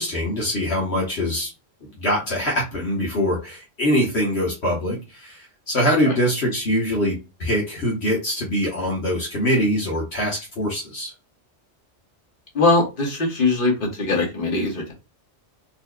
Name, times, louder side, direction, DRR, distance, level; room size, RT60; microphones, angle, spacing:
voice 1, 0.0-1.5 1.8-11.1, equal, 70° left, -3 dB, 1.4 m, -23 dB
voice 2, 12.5-14.9, left 3 dB, 50° left, -1 dB, 1.5 m, -21 dB
4.2 x 2.9 x 2.2 m, 0.28 s
omnidirectional pair, 1.2 m